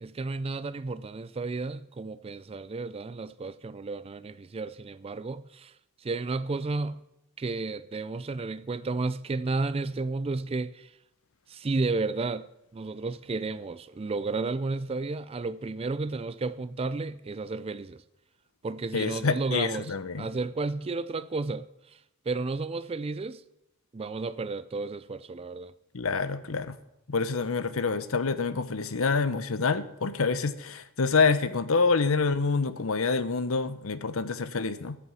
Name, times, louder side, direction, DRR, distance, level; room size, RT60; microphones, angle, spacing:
voice 1, 0.0-5.7 6.0-7.0 7.4-10.9 11.5-12.5 12.7-18.0 18.6-22.0 22.3-23.4 23.9-25.7, right 3 dB, 25° right, 0.4 m, -32 dB
voice 2, 18.9-20.3 25.9-26.8 27.1-35.0, left 4 dB, 65° left, 0.8 m, -27 dB
14.0 x 6.9 x 7.0 m
head